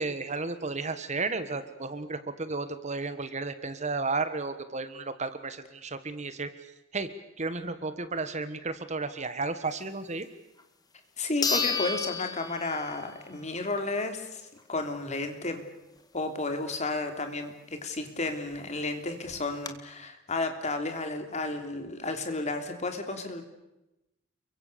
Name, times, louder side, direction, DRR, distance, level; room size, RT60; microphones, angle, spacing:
voice 1, 0.0-6.5 6.9-7.1 7.4-10.3, right 3 dB, 35° right, 12 dB, 1.5 m, -33 dB
sound 1, 10.6-10.7 11.4-13.2 13.6-13.7 18.3-18.4 18.6-18.7 19.2-19.7, left 5 dB, 20° left, 1.9 m, -31 dB
voice 2, 11.2-14.4 14.7-15.6 16.1-23.4, left 2 dB, 35° left, 6 dB, 3.2 m, -32 dB
29.5 x 23.5 x 6.9 m, 0.94 s
head